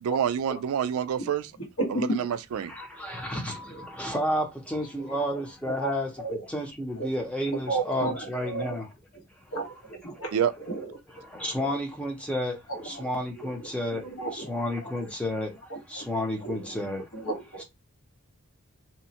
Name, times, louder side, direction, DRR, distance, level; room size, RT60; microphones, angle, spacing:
voice 1, 0.0-1.4 1.9-2.7 10.3-10.5, right 8 dB, 80° right, 0.3 m, -27 dB
voice 2, 1.8-2.3 5.1-5.2 5.8-6.4 6.9-7.1 7.5-8.3 8.5-8.8 9.5-11.0 11.7-11.8 12.7-13.1 13.4-14.5 14.8-14.9 15.7-16.0 16.4-16.6 17.1-17.6, right 2 dB, 80° left, 1.3 m, -33 dB
voice 3, 2.6-8.9 9.5-9.6 10.0-10.2 11.1-14.1 14.3-17.1 17.6-17.7, equal, 5° left, 0.5 m, -31 dB
2.8 x 2.1 x 2.7 m
head